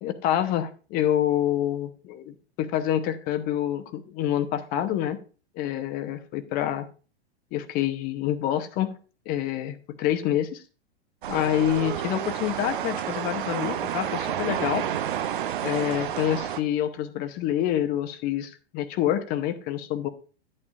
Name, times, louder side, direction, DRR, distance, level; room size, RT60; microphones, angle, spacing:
voice 1, 0.0-5.2 5.6-6.9 7.5-9.0 9.3-10.6 11.3-14.9 15.6-20.1, left 11 dB, 25° left, 9 dB, 0.9 m, -27 dB
sound 1, 11.2-16.6, right 10 dB, 50° right, 0.7 m, -30 dB
11.0 x 8.8 x 2.5 m, 0.36 s
figure-of-eight pair, 100°, 33 cm